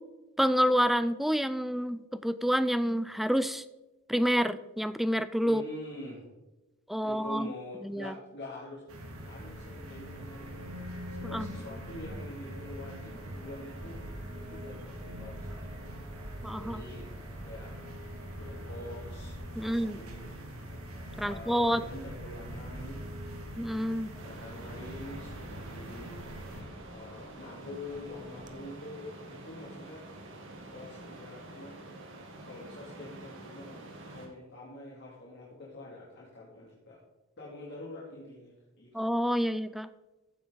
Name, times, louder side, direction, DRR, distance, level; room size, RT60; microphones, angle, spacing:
voice 1, 0.4-3.6 4.1-5.6 6.9-7.5 7.8-8.1 11.3-11.5 16.4-16.8 19.6-20.0 21.2-21.8 23.6-24.1 38.9-39.9, equal, ahead, 13 dB, 0.4 m, -28 dB
voice 2, 5.4-6.3 7.0-10.5 11.1-14.0 14.5-16.0 16.6-17.1 17.4-18.0 18.4-20.4 21.1-23.0 24.2-26.2 26.9-30.1 30.7-31.8 32.4-37.0 37.4-38.9, left 1 dB, 55° left, -5 dB, 2.5 m, -45 dB
sound 1, 8.9-26.6, equal, 85° right, 2.3 m, -43 dB
Camera, 13.8-28.5, right 1 dB, 35° right, 1.0 m, -49 dB
sound 2, 24.2-34.3, right 2 dB, 65° right, 2.3 m, -47 dB
15.0 x 8.4 x 3.9 m, 1.1 s
head